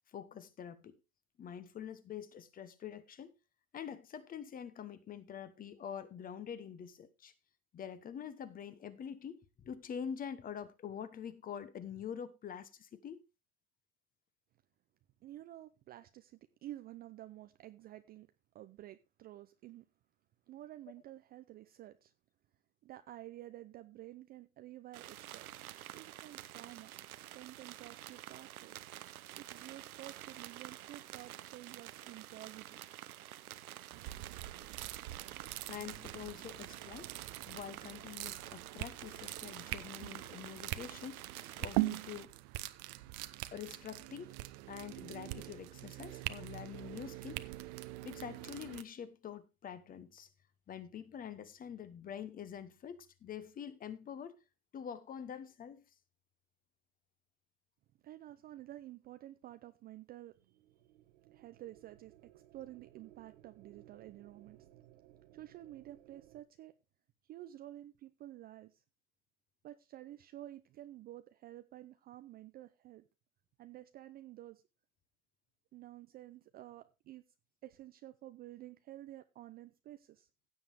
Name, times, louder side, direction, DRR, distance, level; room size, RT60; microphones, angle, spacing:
voice 1, 0.1-0.9 1.4-3.3 3.7-7.3 7.7-13.2 35.7-37.1 37.4-41.3 41.6-42.3 43.5-44.3 44.7-47.5 48.0-50.3 50.7-54.4 54.7-55.8, left 8 dB, 20° left, 1.0 m, -46 dB
voice 2, 15.2-18.3 18.5-19.9 20.5-22.1 22.8-25.5 25.9-26.9 27.3-28.8 29.4-32.8 58.0-60.4 61.3-64.7 65.3-66.8 67.3-68.8 69.6-73.1 73.6-74.6 75.7-77.2 77.6-80.3, right 14 dB, 20° right, 0.5 m, -51 dB
sound 1, 24.9-42.3, right 13 dB, 80° right, 0.9 m, -49 dB
sound 2, 33.9-48.8, right 19 dB, 40° right, 0.9 m, -42 dB
sound 3, 60.3-66.4, right 14 dB, 60° right, 1.6 m, -61 dB
16.0 x 7.2 x 3.5 m
hypercardioid pair, 120°, 43 cm